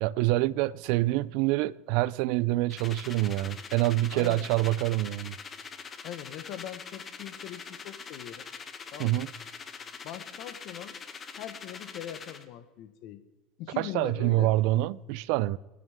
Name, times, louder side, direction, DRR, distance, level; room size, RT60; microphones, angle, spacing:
voice 1, 0.0-5.4 9.0-9.3 13.8-15.6, right 17 dB, 70° right, 0.5 m, -26 dB
sound 1, 2.7-12.4, left 5 dB, 30° left, 1.3 m, -43 dB
voice 2, 4.1-4.5 6.0-8.5 8.9-9.2 10.0-11.0 11.4-13.2 13.6-14.5, left 11 dB, 60° left, 1.4 m, -41 dB
28.0 x 9.3 x 3.7 m
supercardioid pair, 120°, 0 cm